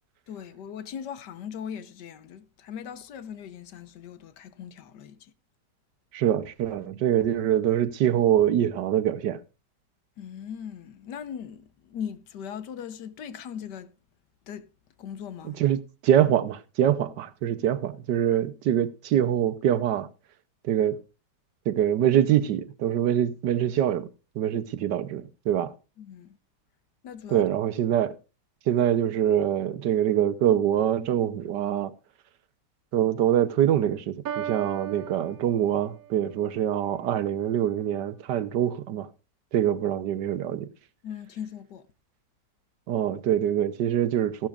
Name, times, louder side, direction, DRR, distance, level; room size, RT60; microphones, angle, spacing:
voice 1, 0.3-5.3 10.2-13.9 14.5-14.7 15.0-15.6 26.0-26.4 27.0-27.4 39.6-39.7 41.0-41.9, left 8 dB, 80° left, 1.5 m, -39 dB
voice 2, 6.1-9.4 15.6-20.1 20.6-21.0 21.7-24.1 24.3-25.7 27.3-28.2 28.7-31.9 32.9-39.1 39.5-40.7 42.9-44.5, right 10 dB, 80° right, 1.5 m, -24 dB
Piano, 34.2-36.2, right 10 dB, 60° right, 1.4 m, -36 dB
15.5 x 12.0 x 2.4 m
omnidirectional pair, 1.8 m